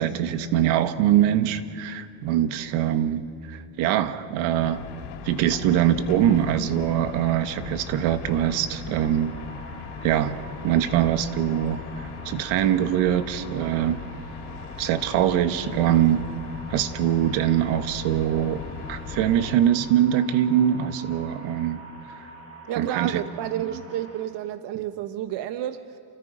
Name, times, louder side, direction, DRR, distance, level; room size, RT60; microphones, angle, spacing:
voice 1, 0.0-4.8 5.2-9.3 10.0-10.4 10.6-14.0 14.8-16.2 16.7-18.6 18.9-21.8 22.8-23.2 23.6-23.7, right 11 dB, 80° right, 9 dB, 1.5 m, -23 dB
sound 1, 4.6-19.6, left 7 dB, 90° left, 3.5 m, -39 dB
sound 2, 9.2-24.2, right 2 dB, 30° right, 7.8 m, -45 dB
voice 2, 22.7-26.0, right 11 dB, 65° right, 9 dB, 1.2 m, -30 dB
29.0 x 27.5 x 5.1 m, 2.2 s
cardioid pair, 105°, 46 cm